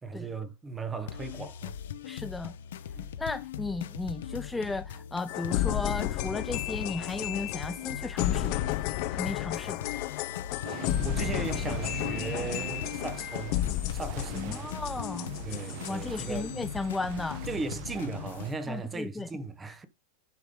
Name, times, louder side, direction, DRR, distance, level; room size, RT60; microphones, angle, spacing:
voice 1, 0.0-1.8 2.9-3.1 10.7-13.6 13.9-14.7 15.4-16.6 17.5-19.9, right 3 dB, 15° right, 1.0 m, -37 dB
sound 1, 1.1-18.5, left 9 dB, 85° left, 0.9 m, -40 dB
voice 2, 2.0-2.5 3.2-8.6 9.1-9.9 14.3-15.3 15.9-17.4 18.7-19.3, left 3 dB, 5° left, 0.4 m, -35 dB
sound 2, 5.3-16.6, left 14 dB, 45° left, 0.7 m, -33 dB
sound 3, 10.6-18.5, right 12 dB, 45° right, 0.8 m, -42 dB
11.0 x 5.1 x 3.7 m
supercardioid pair, 155°, 0 cm